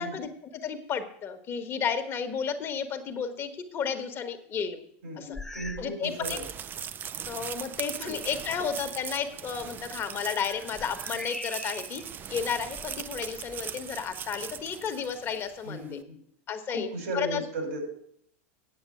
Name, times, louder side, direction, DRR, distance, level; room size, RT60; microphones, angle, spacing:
voice 1, 0.0-4.8 5.1-5.4 5.8-6.4 7.3-12.0 12.3-16.0 16.5-16.9 17.1-17.4, left 7 dB, 35° left, 7 dB, 1.4 m, -32 dB
voice 2, 5.0-6.4 8.0-8.1 15.6-16.2 16.7-17.8, right 1 dB, 85° right, 3 dB, 5.3 m, -36 dB
sound 1, 5.3-6.0 6.3-6.6 7.3-7.4 9.8-12.1 12.6-13.7, left 2 dB, 5° left, 0.9 m, -43 dB
sound 2, 6.0-15.6, right 8 dB, 25° right, 0.4 m, -39 dB
8.9 x 7.2 x 8.5 m, 0.70 s
supercardioid pair, 125°, 7 cm